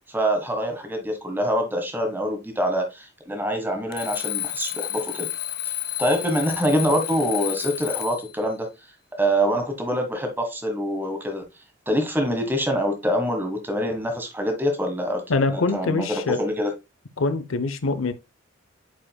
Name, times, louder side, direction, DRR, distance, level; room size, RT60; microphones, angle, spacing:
voice 1, 0.1-5.3 6.0-8.7 9.2-11.4 11.9-16.7, equal, 10° right, 1.5 m, -25 dB
Alarm, 3.9-8.3, left 13 dB, 50° left, 0.9 m, -31 dB
voice 2, 15.3-16.4 17.2-18.1, left 3 dB, 85° left, 0.7 m, -24 dB
8.9 x 5.1 x 2.3 m
head